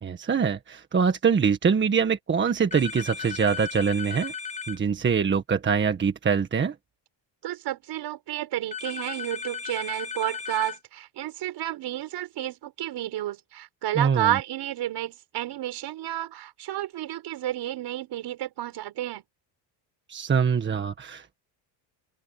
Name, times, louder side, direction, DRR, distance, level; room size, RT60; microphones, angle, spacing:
voice 1, 0.0-4.3 4.7-6.7 13.9-14.3 20.1-21.3, right 6 dB, 25° right, 1.5 m, -24 dB
sound 1, 2.7-4.8 8.7-10.8, left 6 dB, 15° left, 5.8 m, -36 dB
voice 2, 7.4-19.2, right 13 dB, 55° right, 5.2 m, -31 dB
open air
cardioid pair, 145°, 48 cm